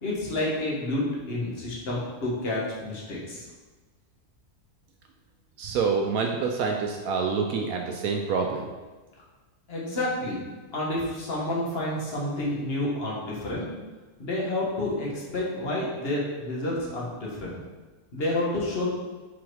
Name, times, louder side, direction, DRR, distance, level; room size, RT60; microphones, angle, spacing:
voice 1, 0.0-3.4 9.7-10.4 10.7-13.7 14.2-17.6 18.1-18.9, left 1 dB, 40° left, -5 dB, 1.5 m, -29 dB
voice 2, 5.6-8.7, right 5 dB, 75° right, 2 dB, 1.0 m, -27 dB
4.8 x 4.2 x 4.6 m, 1.3 s
omnidirectional pair, 1.6 m